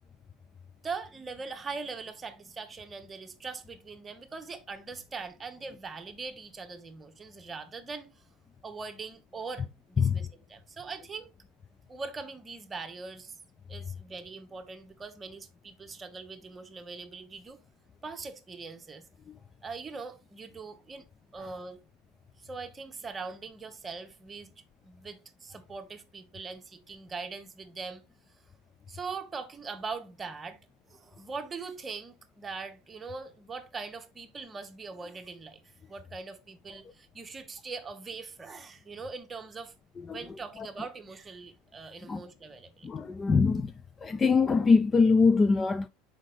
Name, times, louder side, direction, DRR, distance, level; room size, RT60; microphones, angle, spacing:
voice 1, 0.8-8.2 8.6-11.3 11.9-13.4 13.7-17.6 18.0-19.0 19.6-21.1 21.3-21.8 22.4-24.5 24.8-28.0 28.9-30.6 30.9-35.6 35.9-39.7 40.0-42.9, right 4 dB, 20° right, 1.0 m, -41 dB
voice 2, 42.8-43.7 44.0-45.9, left 4 dB, 20° left, 0.3 m, -23 dB
6.3 x 5.0 x 3.7 m
supercardioid pair, 135°, 0 cm